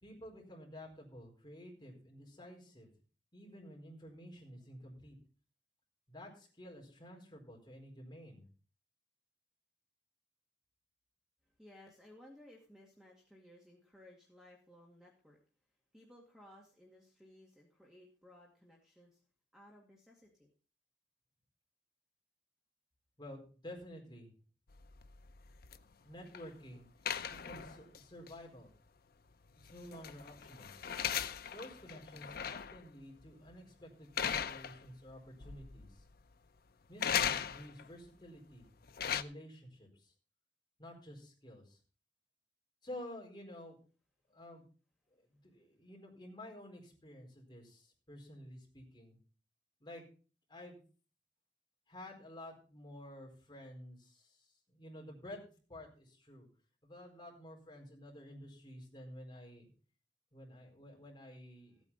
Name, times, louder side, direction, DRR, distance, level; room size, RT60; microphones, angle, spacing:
voice 1, 0.0-2.9 3.3-5.2 6.1-8.5 23.2-24.3 26.0-26.9 27.4-28.7 29.7-30.7 31.5-36.0 36.9-38.7 39.0-40.1 40.8-41.8 42.8-43.8 44.3-44.6 45.1-49.2 49.8-50.0 50.5-50.8 51.9-56.5 56.8-59.7 60.3-61.8, left 1 dB, 25° left, -2 dB, 4.5 m, -51 dB
voice 2, 11.6-15.4 15.9-19.2 19.5-20.5, left 1 dB, 5° right, -2 dB, 2.2 m, -59 dB
sound 1, 24.7-26.5 27.1-28.0 28.3-28.4 29.6-32.8 33.2-33.5 34.2-35.1 35.4-36.0 37.0-37.9 38.7-39.2, left 8 dB, 60° left, 0.6 m, -38 dB
15.5 x 9.0 x 4.2 m, 0.38 s
head